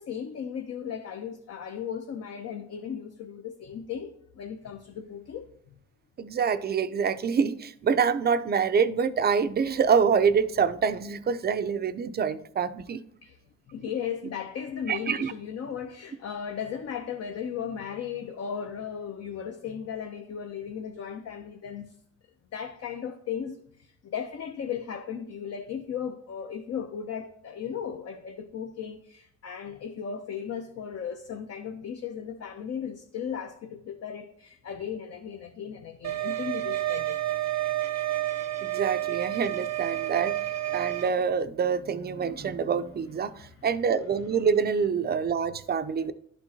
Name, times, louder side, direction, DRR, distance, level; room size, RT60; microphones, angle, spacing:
voice 1, 0.0-5.5 13.2-13.4 13.7-21.9 22.5-37.2 43.6-43.7 46.0-46.1, left 7 dB, 55° left, 0.7 m, -36 dB
voice 2, 6.2-13.0 14.9-15.3 38.7-40.3 40.7-46.1, right 6 dB, 35° right, 0.5 m, -26 dB
sound 1, 36.0-41.1, right 14 dB, 65° right, 0.8 m, -30 dB
11.0 x 4.5 x 2.7 m
cardioid pair, 90°, 30 cm